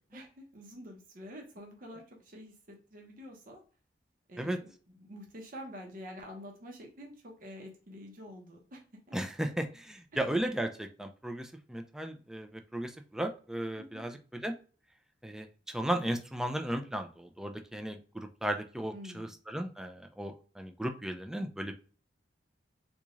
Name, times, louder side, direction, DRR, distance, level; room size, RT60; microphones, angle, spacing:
voice 1, 0.1-3.6 4.3-8.8 9.1-9.2 10.1-10.2 13.8-14.1 18.9-19.3, equal, 50° right, 1 dB, 1.0 m, -48 dB
voice 2, 9.1-14.5 15.2-21.7, right 1 dB, 5° right, 5 dB, 0.3 m, -35 dB
3.5 x 2.4 x 3.1 m, 0.38 s
head